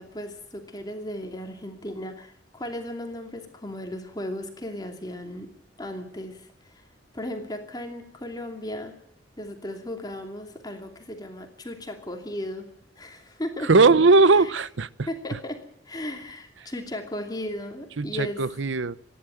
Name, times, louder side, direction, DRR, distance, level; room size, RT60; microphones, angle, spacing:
voice 1, 0.0-5.5 5.8-6.8 7.1-8.9 9.4-12.7 13.0-13.7 15.1-18.4, left 1 dB, 20° left, 2.7 m, -36 dB
voice 2, 13.6-15.4 18.0-19.0, right 3 dB, 75° right, 0.7 m, -19 dB
27.0 x 11.5 x 9.2 m
head